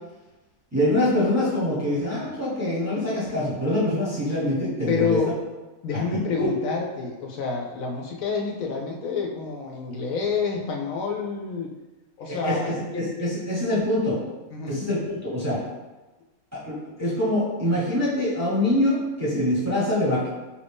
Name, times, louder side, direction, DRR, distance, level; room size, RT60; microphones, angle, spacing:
voice 1, 0.7-5.2 6.1-6.5 12.2-14.2 14.7-15.6 16.5-20.3, left 1 dB, 15° right, -8 dB, 0.8 m, -24 dB
voice 2, 4.9-5.4 5.8-11.7 12.2-13.3 14.5-14.8, left 4 dB, 75° left, -1 dB, 1.0 m, -28 dB
4.8 x 2.6 x 3.4 m, 1.1 s
omnidirectional pair, 1.5 m